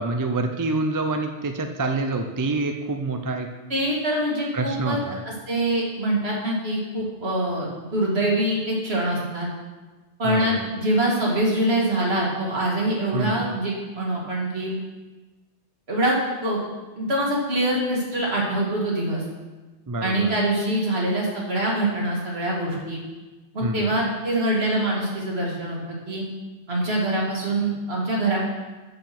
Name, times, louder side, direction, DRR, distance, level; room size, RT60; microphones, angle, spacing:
voice 1, 0.0-3.5 4.5-5.2 10.2-10.7 13.1-13.5 19.9-20.3 23.6-23.9, right 2 dB, 25° right, 5 dB, 0.4 m, -27 dB
voice 2, 3.7-5.0 5.2-9.5 10.2-14.8 15.9-16.2 16.4-16.6 17.0-19.2 20.0-23.0 23.5-26.3 26.7-28.4, right 1 dB, 60° right, -3 dB, 2.4 m, -24 dB
7.7 x 6.9 x 6.0 m, 1.2 s
omnidirectional pair, 1.2 m